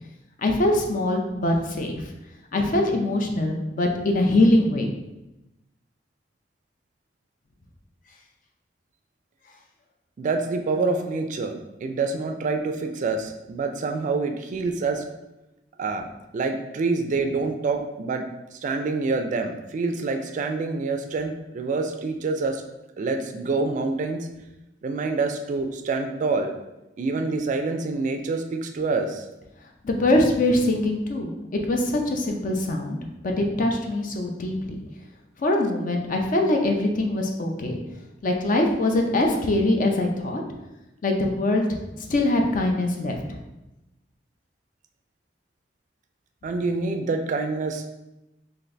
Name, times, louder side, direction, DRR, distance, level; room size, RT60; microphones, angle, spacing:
voice 1, 0.4-2.0 2.5-4.9 29.8-31.4 31.7-33.0 33.2-34.8 35.4-37.8 38.2-40.4 41.0-41.8 42.1-43.4, left 1 dB, 50° left, 3 dB, 0.5 m, -23 dB
voice 2, 10.2-15.0 15.8-16.1 16.3-18.2 18.5-22.6 23.0-24.3 24.8-26.5 27.0-29.2 46.4-47.9, right 3 dB, 45° right, 5 dB, 0.3 m, -26 dB
3.9 x 2.5 x 3.2 m, 0.95 s
head